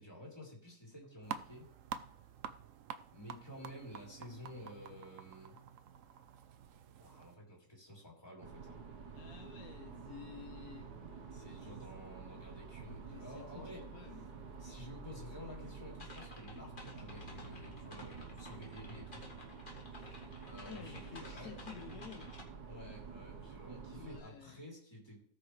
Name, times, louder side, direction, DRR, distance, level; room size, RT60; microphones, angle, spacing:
voice 1, 0.0-1.7 3.1-5.6 7.0-8.8 11.3-13.8 14.6-19.3 19.9-21.6 22.6-25.2, left 1 dB, 15° left, 3.5 m, -52 dB
sound 1, 1.2-7.3, right 8 dB, 60° right, 1.0 m, -48 dB
sound 2, 8.4-24.2, right 5 dB, 80° right, 1.7 m, -49 dB
voice 2, 9.1-10.9 13.1-14.2 20.7-22.3 23.9-24.6, left 9 dB, 70° left, 1.1 m, -52 dB
sound 3, 16.0-22.4, left 2 dB, 30° left, 2.0 m, -54 dB
18.5 x 6.2 x 3.2 m
omnidirectional pair, 1.7 m